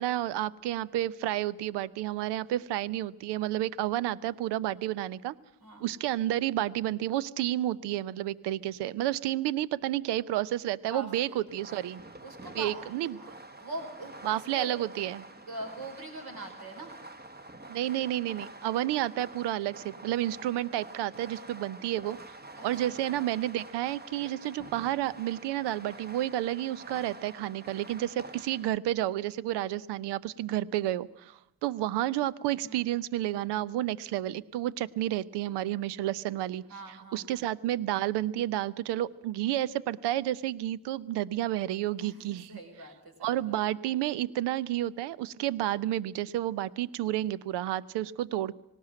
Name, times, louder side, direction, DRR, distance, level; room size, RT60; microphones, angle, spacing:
voice 1, 0.0-5.4 5.8-12.0 12.6-13.2 14.2-15.2 17.7-22.2 22.6-42.6 43.2-48.5, right 13 dB, 75° right, 20 dB, 0.7 m, -31 dB
voice 2, 10.8-11.4 12.2-13.3 13.6-14.7 15.3-16.9 22.6-22.9 32.6-32.8 36.7-37.4 42.0-43.6, right 2 dB, 60° right, 2 dB, 4.9 m, -43 dB
Fireworks, 11.5-28.8, right 2 dB, 25° right, 1.3 m, -48 dB
18.5 x 17.5 x 8.9 m, 0.82 s
hypercardioid pair, 40°, 41 cm